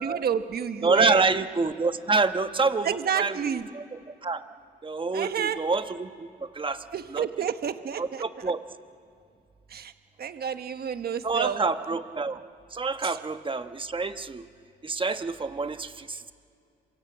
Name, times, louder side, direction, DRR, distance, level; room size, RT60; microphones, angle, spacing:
voice 1, 0.0-1.2 2.8-3.7 5.1-5.6 6.9-8.5 9.7-9.9 10.2-11.6 13.0-13.2, right 8 dB, 50° right, 9 dB, 1.3 m, -30 dB
voice 2, 0.8-2.9 3.2-3.8 4.2-4.4 4.8-6.1 6.5-6.8 7.1-7.2 8.0-8.6 11.2-12.4 12.7-14.4 14.8-16.3, right 4 dB, 25° right, 9 dB, 1.3 m, -27 dB
27.0 x 22.5 x 8.7 m, 2.4 s
cardioid pair, 90°, 20 cm